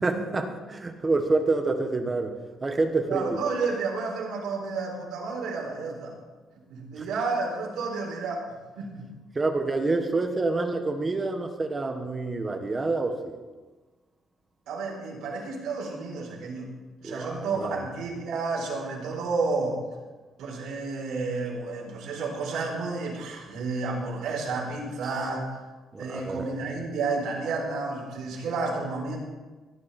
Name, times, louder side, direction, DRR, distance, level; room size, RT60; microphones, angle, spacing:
voice 1, 0.0-2.3 2.6-3.4 7.0-7.1 9.3-13.4 17.0-17.8 25.0-25.1 25.9-26.5, right 3 dB, 20° right, 6 dB, 1.3 m, -27 dB
voice 2, 3.1-6.2 6.7-8.4 8.8-9.1 14.7-16.7 17.0-19.8 20.4-25.6 26.0-29.2, right 4 dB, 90° right, -2 dB, 4.4 m, -31 dB
17.5 x 11.5 x 4.3 m, 1.3 s
cardioid pair, 155°, 0 cm